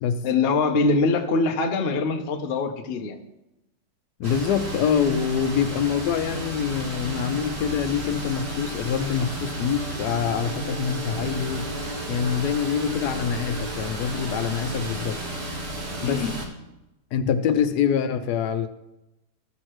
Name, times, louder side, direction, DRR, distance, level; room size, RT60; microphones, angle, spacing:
voice 1, 0.2-3.2 16.0-16.3, left 3 dB, 50° left, 5 dB, 0.8 m, -23 dB
voice 2, 4.2-11.8 12.1-15.2 16.0-16.3 17.1-18.7, left 8 dB, 75° left, 9 dB, 1.1 m, -25 dB
sound 1, 4.2-16.5, right 1 dB, 40° right, 1.5 m, -32 dB
Brass instrument, 9.8-13.9, right 3 dB, 70° right, 1.4 m, -40 dB
14.0 x 6.4 x 3.0 m, 0.94 s
omnidirectional pair, 1.8 m